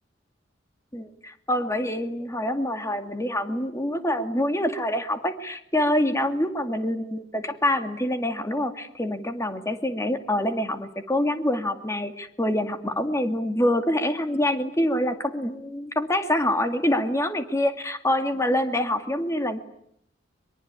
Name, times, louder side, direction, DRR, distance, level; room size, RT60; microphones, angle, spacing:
voice 1, 0.9-19.6, left 1 dB, 15° left, 7 dB, 2.3 m, -26 dB
23.5 x 23.0 x 9.8 m, 0.71 s
head